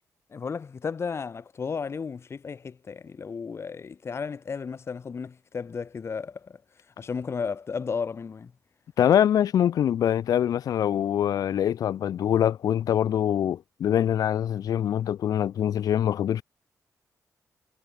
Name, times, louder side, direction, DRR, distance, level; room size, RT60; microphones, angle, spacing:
voice 1, 0.3-6.6 7.0-8.5, left 5 dB, 45° left, 2.8 m, -34 dB
voice 2, 9.0-16.4, left 10 dB, 80° left, 0.7 m, -24 dB
cardioid pair, 110°, 6 cm